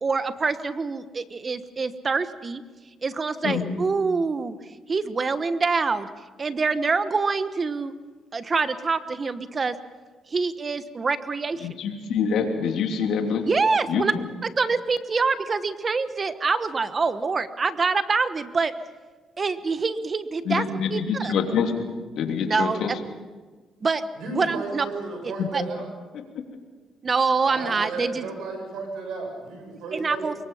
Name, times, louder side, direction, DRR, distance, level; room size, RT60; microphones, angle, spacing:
voice 1, 0.0-2.6 3.0-4.6 4.9-6.1 6.4-7.9 8.3-9.7 10.3-11.7 13.5-14.1 14.4-18.7 19.4-20.6 20.9-21.3 22.5-22.8 23.8-24.0 24.3-24.9 25.5-25.6 27.0-28.3 29.9-30.3, right 4 dB, 35° right, 11 dB, 1.2 m, -25 dB
voice 2, 11.6-13.5 13.9-14.2 20.4-21.9 22.2-23.0 25.4-25.5 26.1-26.4, left 6 dB, 80° left, 3 dB, 3.1 m, -26 dB
voice 3, 24.2-25.9 27.4-30.3, right 3 dB, 80° right, 3 dB, 7.1 m, -33 dB
24.0 x 22.0 x 5.7 m, 1.4 s
cardioid pair, 90°, 0 cm